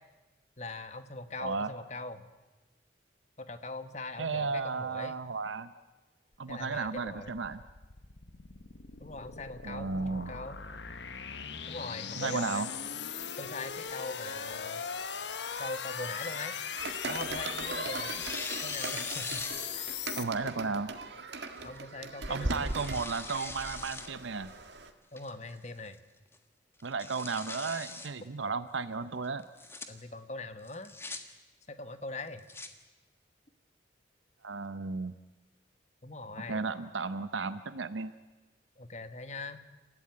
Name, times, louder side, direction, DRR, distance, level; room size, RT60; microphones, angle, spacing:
voice 1, 0.6-2.3 3.4-5.2 6.5-7.4 9.0-10.6 11.7-12.7 13.4-14.8 15.6-16.6 17.1-19.5 19.8-20.1 20.4-20.7 21.6-22.7 25.1-26.0 29.9-30.9 31.7-32.4 36.0-36.6 38.8-39.6, left 2 dB, 35° left, 10 dB, 1.3 m, -41 dB
voice 2, 1.4-1.7 4.2-5.7 6.4-7.6 9.6-10.3 12.2-12.7 20.2-20.9 22.3-24.5 26.8-29.4 34.4-35.1 36.5-38.1, right 4 dB, 85° right, 12 dB, 0.8 m, -34 dB
sound 1, 7.0-20.2, left 7 dB, 70° left, 1.3 m, -39 dB
Tearing, 16.2-17.5 18.0-20.0 20.5-20.6 21.5-21.8 22.3-24.1 24.5-24.6 25.2-25.6 25.9-26.0 26.3-26.4 26.8-28.1 29.4-29.9 30.6-31.2 32.2-32.7, left 3 dB, 15° left, 1.5 m, -42 dB
sound 2, 16.8-24.9, right 2 dB, 65° right, 1.9 m, -39 dB
28.5 x 15.0 x 9.7 m, 1.2 s
head